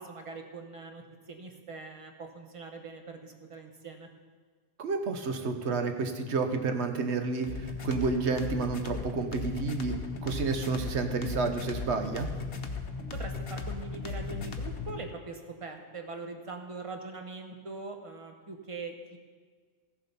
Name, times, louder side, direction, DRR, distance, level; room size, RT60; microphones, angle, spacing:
voice 1, 0.0-4.1 13.1-19.2, right 3 dB, 30° right, 4 dB, 1.1 m, -42 dB
voice 2, 4.8-10.0 10.2-12.3, right 4 dB, 65° right, 6 dB, 1.2 m, -30 dB
sound 1, 7.4-15.0, left 4 dB, 55° left, 1.2 m, -36 dB
14.5 x 7.6 x 5.5 m, 1.5 s
omnidirectional pair, 1.3 m